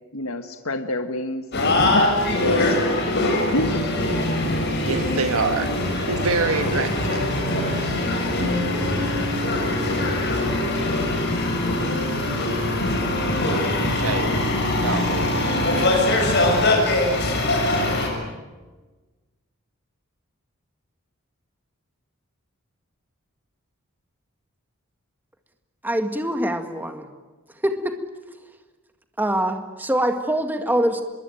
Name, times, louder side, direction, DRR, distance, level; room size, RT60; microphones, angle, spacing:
voice 1, 0.1-3.9, left 2 dB, 80° left, 7 dB, 1.4 m, -29 dB
sound 1, 1.5-18.1, left 1 dB, 50° left, 6.3 m, -22 dB
voice 2, 4.8-7.3 7.6-7.9 13.8-14.4 14.8-15.3 15.6-17.0, right 4 dB, 80° right, 7 dB, 1.7 m, -28 dB
voice 3, 25.8-27.1 27.6-28.0 29.2-31.0, right 1 dB, 10° right, 6 dB, 1.8 m, -24 dB
24.5 x 22.5 x 9.2 m, 1.2 s
head